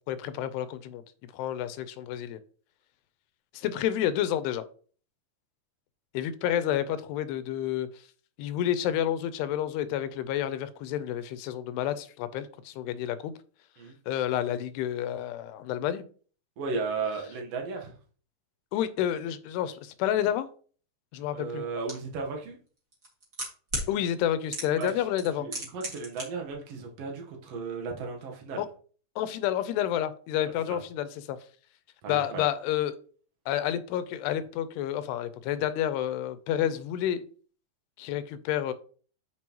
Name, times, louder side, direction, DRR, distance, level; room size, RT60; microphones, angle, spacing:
voice 1, 0.1-1.0 1.3-2.4 3.5-4.6 6.1-7.9 8.4-13.3 14.1-16.0 18.7-20.5 21.1-21.7 23.9-25.5 28.6-28.7 29.2-31.4 32.1-33.0 33.5-37.2 38.0-38.7, left 11 dB, 85° left, 2.7 m, -29 dB
voice 2, 16.6-17.9 21.3-22.6 24.8-25.0 25.4-28.6 30.7-30.8 32.0-32.4, right 4 dB, 90° right, 1.3 m, -35 dB
sound 1, 21.9-22.0 22.9-23.9 24.5-24.9 25.2-26.2 26.5-26.6, right 1 dB, 30° right, 1.7 m, -33 dB
7.6 x 6.1 x 2.9 m
omnidirectional pair, 4.8 m